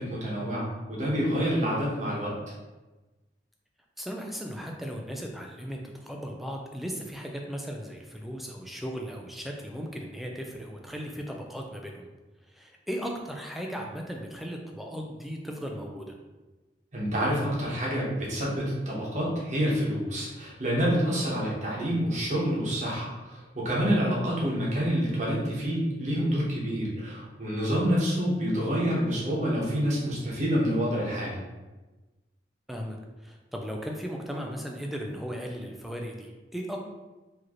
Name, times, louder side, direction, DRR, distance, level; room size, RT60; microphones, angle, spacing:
voice 1, 0.0-2.4 16.9-31.4, equal, 40° right, -5 dB, 1.1 m, -27 dB
voice 2, 4.0-12.1 12.4-16.1 21.5-21.6 32.7-36.8, equal, ahead, 1 dB, 0.4 m, -37 dB
4.7 x 3.0 x 3.0 m, 1.1 s
head